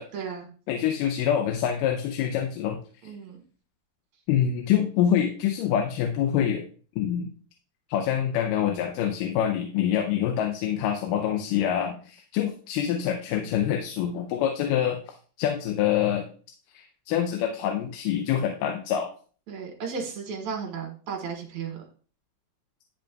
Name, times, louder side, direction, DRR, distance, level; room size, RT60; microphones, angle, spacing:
voice 1, 0.1-0.5 3.0-3.4 19.5-21.8, right 6 dB, 60° right, 2 dB, 2.6 m, -34 dB
voice 2, 0.7-2.8 4.3-6.7 7.0-7.3 7.9-15.0 15.4-16.2 16.7-19.1, left 9 dB, 80° left, 4 dB, 2.3 m, -26 dB
11.5 x 5.2 x 2.3 m, 0.41 s
omnidirectional pair, 3.9 m